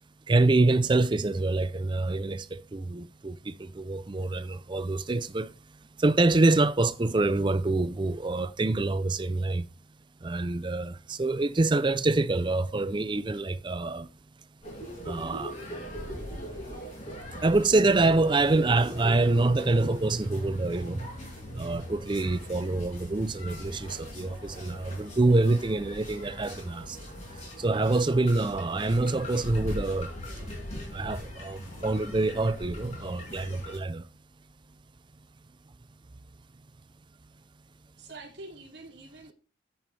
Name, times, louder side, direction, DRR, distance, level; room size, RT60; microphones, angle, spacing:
voice 1, 0.3-5.5 6.0-9.7 10.2-14.1 15.0-15.6 17.4-21.1 21.5-27.0 27.6-30.1 30.4-30.5 30.9-34.1, right 2 dB, 25° right, 0.4 m, -26 dB
sound 1, 14.6-33.8, left 1 dB, 35° left, 5.8 m, -40 dB
voice 2, 38.0-39.3, right 2 dB, 55° right, 2.6 m, -45 dB
9.9 x 8.8 x 3.3 m
head